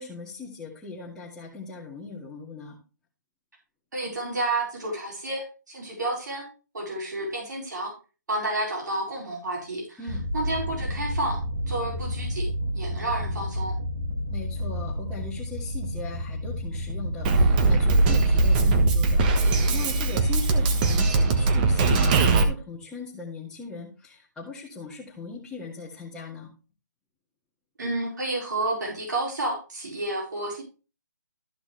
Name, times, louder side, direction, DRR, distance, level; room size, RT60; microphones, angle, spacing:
voice 1, 0.0-2.8 10.0-10.2 14.3-19.3 19.7-26.5, left 4 dB, 5° left, -6 dB, 2.1 m, -39 dB
voice 2, 3.9-6.5 6.7-7.9 8.3-10.0 10.3-11.4 11.7-12.5 12.7-13.7 27.8-30.6, right 2 dB, 70° right, -2 dB, 4.8 m, -30 dB
sound 1, 10.1-20.2, equal, 50° right, 2.4 m, -32 dB
Drum kit, 17.2-22.4, right 3 dB, 25° right, 1.3 m, -20 dB
14.0 x 6.0 x 3.3 m, 0.33 s
hypercardioid pair, 150°, 10 cm